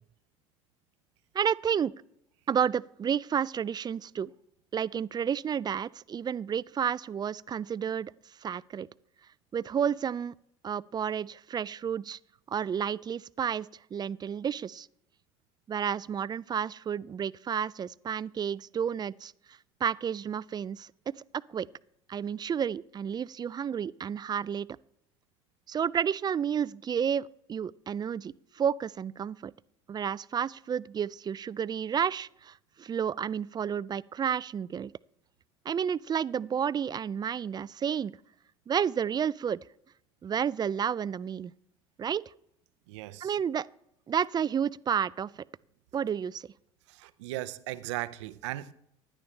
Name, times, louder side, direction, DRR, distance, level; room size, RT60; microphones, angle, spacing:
voice 1, 1.3-1.9 2.5-4.3 4.7-8.1 8.4-8.9 9.5-10.3 10.6-12.2 12.5-14.9 15.7-19.3 19.8-20.9 21.5-21.7 22.1-24.7 25.7-29.5 29.9-34.9 35.7-38.1 38.7-39.6 40.2-41.5 42.0-42.2 43.2-43.7 44.1-45.3 45.9-46.5, right 8 dB, 30° right, 0.3 m, -31 dB
voice 2, 42.9-43.4 46.9-48.7, right 16 dB, 80° right, 0.6 m, -37 dB
16.0 x 11.0 x 3.2 m
hypercardioid pair, 75°, 15 cm